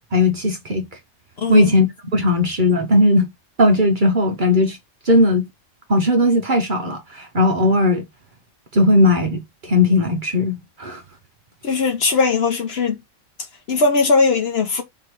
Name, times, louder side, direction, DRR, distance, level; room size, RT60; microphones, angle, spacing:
voice 1, 0.1-0.9 1.5-3.3 3.6-4.8 5.0-5.5 5.9-8.1 8.7-11.0, left 1 dB, 45° right, 0.8 m, -17 dB
voice 2, 1.4-1.7 11.6-13.0 13.7-14.8, left 4 dB, 55° left, 0.9 m, -19 dB
3.6 x 2.9 x 4.4 m
omnidirectional pair, 1.4 m